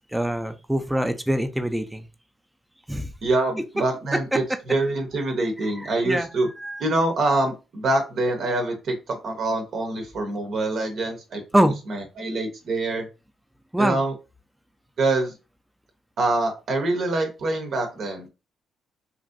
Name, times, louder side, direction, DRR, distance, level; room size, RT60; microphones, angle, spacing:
voice 1, 0.1-2.1 2.9-3.1 4.3-4.4 5.6-6.3 6.6-6.8 11.5-11.7 13.7-14.0, right 1 dB, 5° right, 8 dB, 0.4 m, -24 dB
voice 2, 3.2-6.5 6.8-13.1 13.8-14.1 15.0-15.3 16.2-18.3, right 2 dB, 60° right, 4 dB, 0.7 m, -25 dB
2.9 x 2.5 x 2.5 m, 0.29 s
cardioid pair, 90°, 0 cm